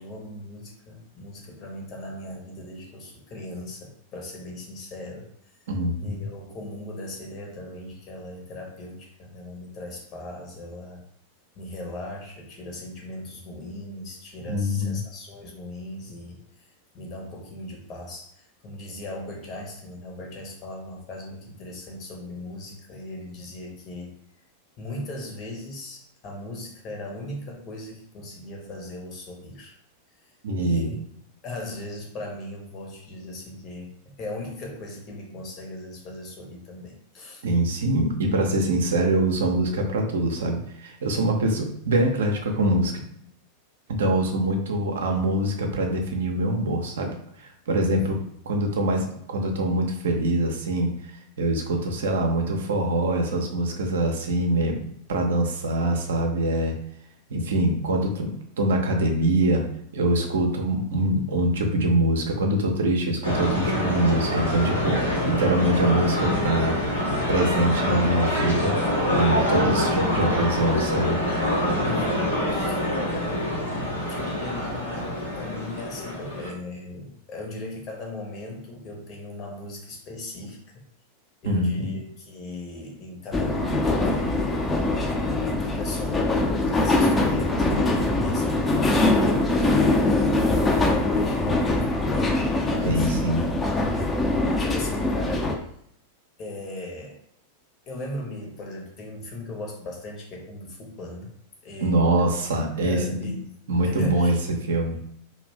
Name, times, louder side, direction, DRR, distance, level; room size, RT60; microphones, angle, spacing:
voice 1, 0.0-5.3 6.0-11.0 11.6-16.4 16.9-24.1 24.8-29.7 30.6-31.0 31.4-37.5 47.9-48.1 71.8-73.7 74.1-80.9 81.4-84.6 84.9-93.3 93.7-93.9 94.6-95.5 96.4-97.2 97.9-101.3 101.6-103.4 103.8-104.4, left 1 dB, 35° left, 0 dB, 0.8 m, -38 dB
voice 2, 5.7-6.2 14.5-15.0 30.4-30.9 37.4-42.9 43.9-47.2 47.4-48.2 48.5-50.9 51.4-54.8 55.1-56.8 57.3-59.6 59.9-66.8 67.3-68.7 69.1-71.2 81.4-82.0 87.6-87.8 92.8-93.5 101.8-103.4 103.7-104.3 104.6-105.0, right 1 dB, 60° right, 3 dB, 0.5 m, -24 dB
sound 1, 63.2-76.5, left 1 dB, 80° left, 0.9 m, -25 dB
sound 2, 83.3-95.5, left 2 dB, 15° left, 0.4 m, -23 dB
2.5 x 2.2 x 3.3 m, 0.70 s
figure-of-eight pair, 90°, 0 cm